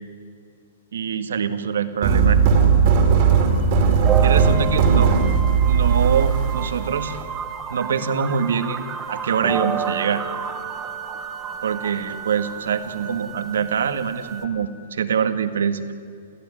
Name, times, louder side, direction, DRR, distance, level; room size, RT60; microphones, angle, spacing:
voice 1, 0.9-2.5 3.8-3.9 4.2-5.1 5.7-7.2 7.7-10.2 11.6-15.8, right 7 dB, 75° right, 10 dB, 1.9 m, -24 dB
sound 1, 2.0-7.2, right 6 dB, 30° right, 2.6 m, -17 dB
sound 2, 3.5-14.5, right 6 dB, 10° right, 1.3 m, -31 dB
29.5 x 15.5 x 10.0 m, 2.3 s
hypercardioid pair, 180°, 0 cm